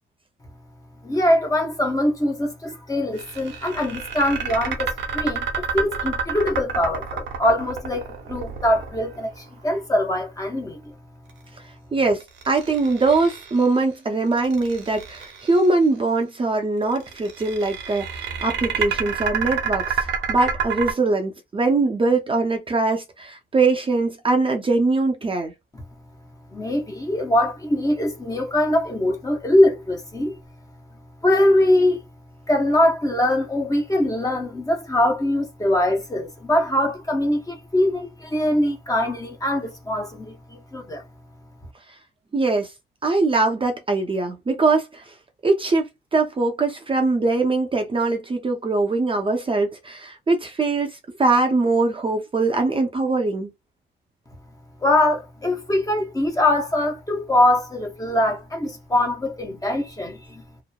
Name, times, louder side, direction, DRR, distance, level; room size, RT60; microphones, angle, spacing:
voice 1, 1.0-10.9 26.5-30.4 31.2-32.0 32.5-41.0 54.8-60.4, left 1 dB, 15° left, 0.8 m, -22 dB
sound 1, 3.2-9.4 12.2-13.8 14.3-15.7 16.9-20.9, right 6 dB, 65° right, 0.9 m, -29 dB
voice 2, 11.9-25.5 42.3-42.7 43.0-45.0 45.4-53.5, right 3 dB, 25° right, 0.6 m, -22 dB
2.8 x 2.0 x 2.3 m
cardioid pair, 90°, 20 cm